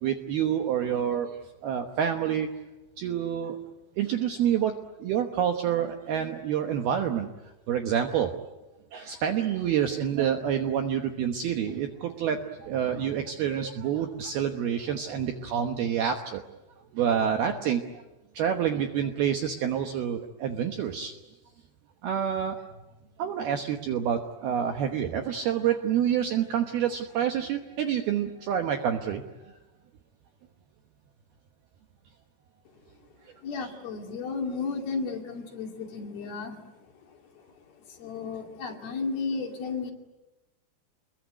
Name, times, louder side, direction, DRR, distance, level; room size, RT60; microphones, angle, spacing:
voice 1, 0.0-2.5 3.0-3.6 4.0-7.3 7.7-8.3 8.9-16.4 16.9-18.0 18.3-21.1 22.0-22.7 23.2-29.2, right 9 dB, 70° right, 5 dB, 2.5 m, -28 dB
voice 2, 33.4-39.9, left 4 dB, 55° left, 2 dB, 4.0 m, -34 dB
28.0 x 22.0 x 9.4 m, 1.1 s
omnidirectional pair, 5.8 m